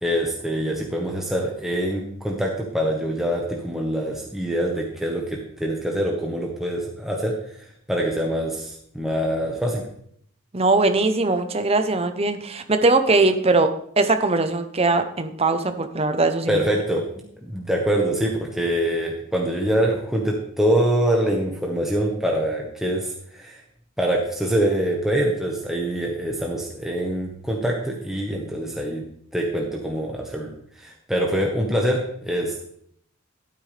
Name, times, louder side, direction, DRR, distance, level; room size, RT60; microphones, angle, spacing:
voice 1, 0.0-7.3 7.9-9.8 16.5-17.0 17.4-23.6 24.0-29.0 29.3-30.5 30.8-32.6, right 1 dB, ahead, -1 dB, 1.2 m, -24 dB
voice 2, 10.5-16.6, right 3 dB, 30° right, 8 dB, 0.7 m, -20 dB
12.5 x 9.4 x 3.3 m, 0.66 s
head